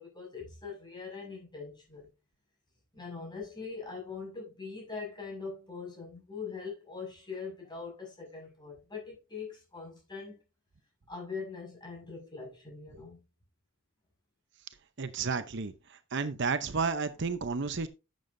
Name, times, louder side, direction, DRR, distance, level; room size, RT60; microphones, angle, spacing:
voice 1, 0.0-2.1 2.9-10.3 11.1-13.2, left 5 dB, 20° left, 5.9 m, -42 dB
voice 2, 15.0-15.7 16.1-17.9, right 4 dB, 60° right, 0.7 m, -31 dB
11.5 x 7.7 x 2.7 m
head